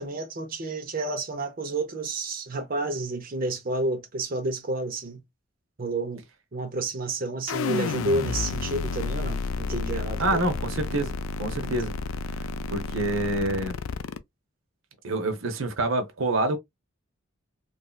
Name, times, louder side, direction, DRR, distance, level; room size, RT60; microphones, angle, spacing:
voice 1, 0.0-5.2 5.8-6.2 6.5-10.4 11.6-11.7, right 2 dB, 45° right, 0.8 m, -30 dB
sound 1, 7.5-14.2, left 4 dB, 85° left, 0.4 m, -31 dB
voice 2, 10.2-11.9 12.4-13.8 15.0-16.6, right 2 dB, 80° right, 0.8 m, -27 dB
3.1 x 2.6 x 2.3 m
head